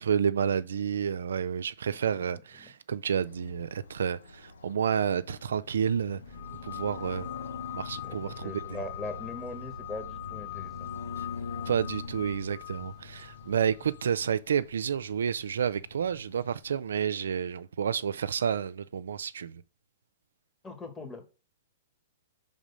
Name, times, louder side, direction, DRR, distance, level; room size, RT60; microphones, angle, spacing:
voice 1, 0.0-6.2 6.6-7.3 7.7-8.8 11.2-11.3 11.7-19.6, right 7 dB, 80° right, 0.3 m, -30 dB
voice 2, 1.9-2.7 8.0-10.9 20.6-21.3, left 3 dB, 15° left, 1.5 m, -41 dB
sound 1, 3.2-17.0, left 4 dB, 90° left, 0.8 m, -44 dB
sound 2, 6.2-14.2, left 5 dB, 30° left, 1.7 m, -52 dB
sound 3, 6.3-14.1, left 30 dB, 55° left, 0.3 m, -43 dB
5.0 x 3.6 x 5.4 m
hypercardioid pair, 125°, 0 cm